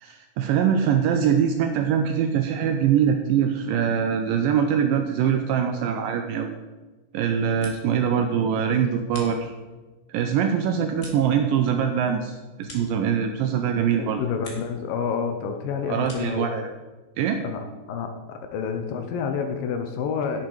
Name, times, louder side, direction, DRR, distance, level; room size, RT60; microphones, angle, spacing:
voice 1, 0.0-6.6 7.1-9.5 10.1-14.2 15.9-16.7 17.2-17.4, right 8 dB, 85° right, 6 dB, 2.0 m, -23 dB
sound 1, 7.3-8.1 8.4-9.9 10.3-13.6 13.9-14.8 15.1-16.5, left 2 dB, 35° left, 1.5 m, -47 dB
voice 2, 14.0-16.5 17.4-20.5, left 6 dB, 75° left, 6 dB, 2.3 m, -29 dB
10.5 x 8.6 x 4.7 m, 1.2 s
omnidirectional pair, 4.6 m